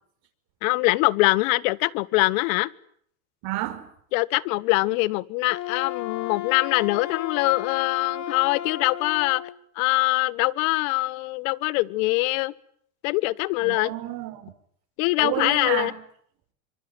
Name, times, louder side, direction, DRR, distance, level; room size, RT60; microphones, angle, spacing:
voice 1, 0.6-2.7 4.1-9.4 9.8-12.5 13.0-13.9 15.0-15.9, left 22 dB, 70° left, 1.4 m, -23 dB
voice 2, 3.4-3.9 13.6-14.5 15.2-16.0, right 14 dB, 60° right, 5.5 m, -30 dB
Wind instrument woodwind instrument, 5.4-9.5, left 11 dB, 40° left, 2.6 m, -34 dB
26.0 x 25.0 x 9.1 m
supercardioid pair, 110°, 42 cm